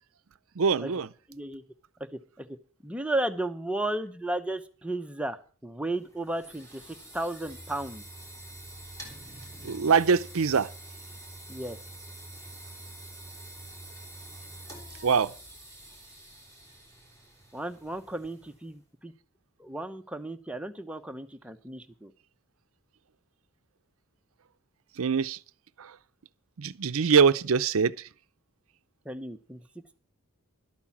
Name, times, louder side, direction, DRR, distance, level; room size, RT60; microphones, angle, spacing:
voice 1, 0.6-1.1 9.6-10.7 15.0-15.3 25.0-25.4 26.6-27.9, right 6 dB, 70° right, 0.5 m, -23 dB
voice 2, 1.3-1.6 2.1-2.6 2.8-8.0 11.5-11.8 17.5-19.1 19.6-22.1 29.0-29.6, right 1 dB, 5° right, 0.7 m, -34 dB
sound 1, 6.0-18.8, right 1 dB, 15° left, 3.6 m, -46 dB
12.0 x 8.8 x 7.2 m
head